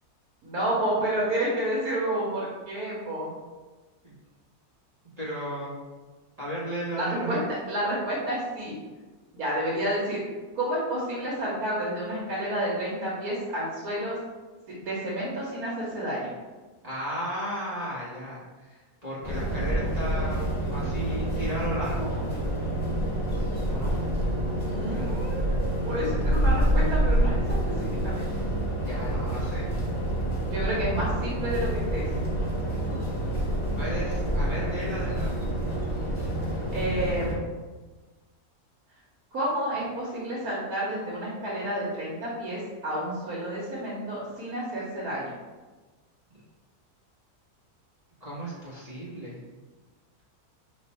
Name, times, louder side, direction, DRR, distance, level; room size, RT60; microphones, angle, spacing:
voice 1, 0.4-3.3 7.0-7.4 7.7-8.7 9.3-10.2 10.5-14.2 14.7-16.3 24.7-27.4 27.8-28.3 30.5-32.1 36.7-37.4 39.3-45.3, right 1 dB, 70° right, -6 dB, 1.3 m, -30 dB
voice 2, 5.2-5.7 6.4-7.4 16.8-22.3 23.7-24.0 28.8-29.7 33.7-35.4 48.2-49.4, equal, 30° right, -9 dB, 1.1 m, -34 dB
sound 1, 19.2-37.3, right 1 dB, 45° left, 0.4 m, -27 dB
3.1 x 2.5 x 4.2 m, 1.3 s
omnidirectional pair, 1.6 m